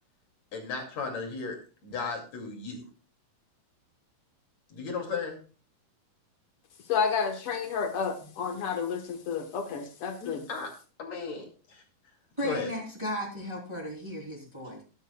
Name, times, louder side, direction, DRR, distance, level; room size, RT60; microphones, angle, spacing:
voice 1, 0.5-1.6 1.8-2.8 4.7-5.4 10.2-10.7 11.0-11.4 11.7-11.8 12.4-12.7, left 4 dB, 50° left, 2 dB, 3.3 m, -35 dB
voice 2, 6.9-10.4, left 6 dB, 90° left, 5 dB, 1.2 m, -30 dB
voice 3, 12.4-14.8, equal, 10° right, -2 dB, 2.7 m, -35 dB
20.0 x 8.9 x 2.3 m, 0.36 s
omnidirectional pair, 4.5 m